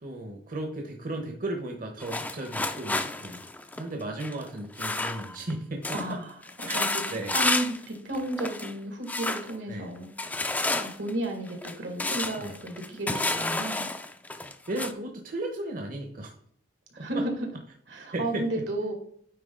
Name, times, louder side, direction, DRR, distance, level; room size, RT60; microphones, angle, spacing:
voice 1, 0.0-3.4 3.8-5.9 6.7-6.8 7.1-7.3 9.6-9.9 12.4-12.6 14.7-16.3 17.0-17.1 18.1-18.4, right 1 dB, 50° right, 3 dB, 0.9 m, -35 dB
sound 1, 2.0-5.5 5.8-6.1 6.4-7.8 8.1-8.7 9.1-9.5 10.2-14.9, left 2 dB, 10° left, 0.4 m, -31 dB
voice 2, 5.9-6.4 6.7-10.4 10.8-13.9 16.9-17.5 17.9-18.9, right 1 dB, 85° right, 3 dB, 2.0 m, -33 dB
9.3 x 3.9 x 3.8 m, 0.65 s
head